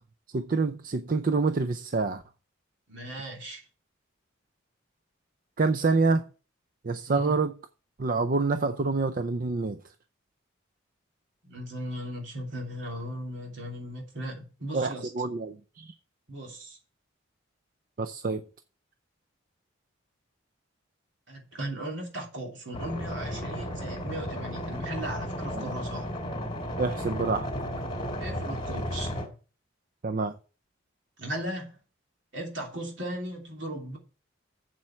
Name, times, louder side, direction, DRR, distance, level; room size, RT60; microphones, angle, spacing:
voice 1, 0.3-2.2 5.6-6.3 6.8-7.5 8.0-9.8 14.7-15.9 18.0-18.4 25.5-25.7 26.8-27.5 30.0-30.3, right 3 dB, 45° right, 0.5 m, -27 dB
voice 2, 2.9-3.6 7.1-7.4 11.4-15.1 16.3-16.8 21.3-26.1 28.2-29.1 31.2-31.8 32.3-34.0, right 1 dB, 65° right, 3.0 m, -37 dB
sound 1, 22.7-29.3, equal, 25° left, 2.6 m, -34 dB
7.7 x 7.5 x 5.7 m
head